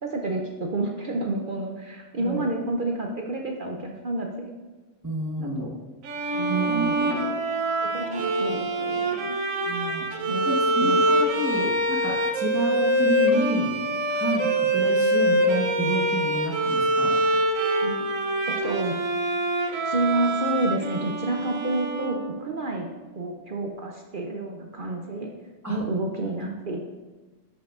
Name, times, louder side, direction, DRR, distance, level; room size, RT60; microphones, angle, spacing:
voice 1, 0.0-4.5 5.4-5.7 6.3-7.4 7.8-9.3 10.2-11.0 11.5-11.6 17.8-18.1 18.5-19.0 19.8-22.9 23.1-25.3 25.7-26.8, right 2 dB, 50° right, 1 dB, 0.7 m, -30 dB
voice 2, 5.0-5.7 6.5-7.2 9.6-10.1 10.4-13.8 14.1-17.2 25.6-25.8, right 2 dB, 15° right, -2 dB, 1.0 m, -29 dB
Bowed string instrument, 6.0-22.6, right 1 dB, 75° right, 1.1 m, -25 dB
11.0 x 5.6 x 2.5 m, 1.2 s
omnidirectional pair, 1.5 m